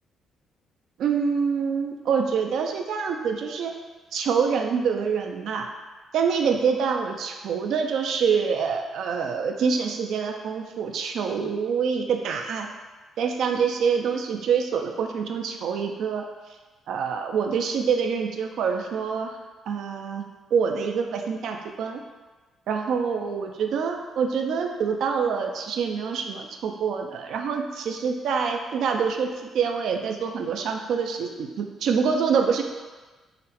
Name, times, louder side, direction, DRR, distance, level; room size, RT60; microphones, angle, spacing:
voice 1, 1.0-3.7 4.1-5.7 6.1-12.7 13.2-16.2 16.9-19.3 19.7-20.2 20.5-22.0 22.7-29.3 29.5-32.6, right 6 dB, 75° right, 3 dB, 0.4 m, -26 dB
3.9 x 2.1 x 4.1 m, 1.3 s
cardioid pair, 90°, 0 cm